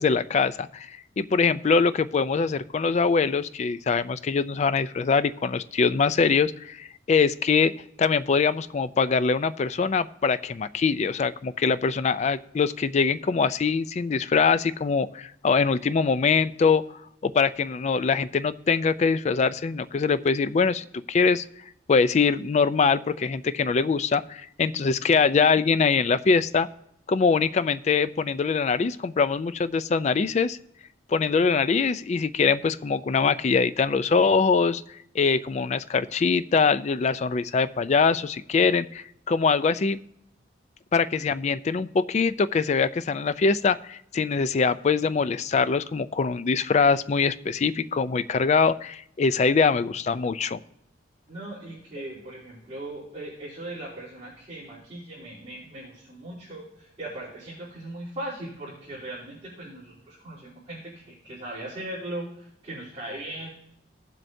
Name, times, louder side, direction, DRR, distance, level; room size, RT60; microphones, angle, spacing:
voice 1, 0.0-7.7 8.0-16.8 17.2-21.4 21.9-26.7 27.1-30.6 31.1-34.8 35.1-40.0 40.9-50.6, left 5 dB, 40° left, 14 dB, 0.3 m, -23 dB
voice 2, 24.7-25.1 51.3-63.5, right 1 dB, 30° right, -11 dB, 3.2 m, -39 dB
17.5 x 7.6 x 2.7 m, 0.76 s
head